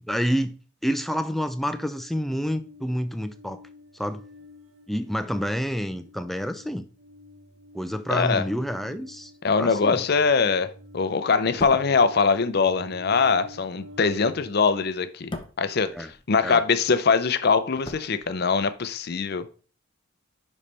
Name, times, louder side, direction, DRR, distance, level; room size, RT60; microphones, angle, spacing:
voice 1, 0.1-0.6 0.8-3.6 3.9-4.2 4.9-6.9 7.7-9.3 9.6-10.0 15.9-16.1 16.4-16.6, equal, ahead, 0.4 m, -28 dB
sound 1, 1.7-14.9, left 2 dB, 80° right, 1.2 m, -48 dB
voice 2, 8.1-8.4 9.4-15.3 15.6-19.5, left 5 dB, 55° left, 0.6 m, -22 dB
sound 2, 11.4-16.7 17.0-18.8 19.1-19.3, left 1 dB, 25° left, 0.8 m, -42 dB
10.5 x 4.2 x 3.3 m
head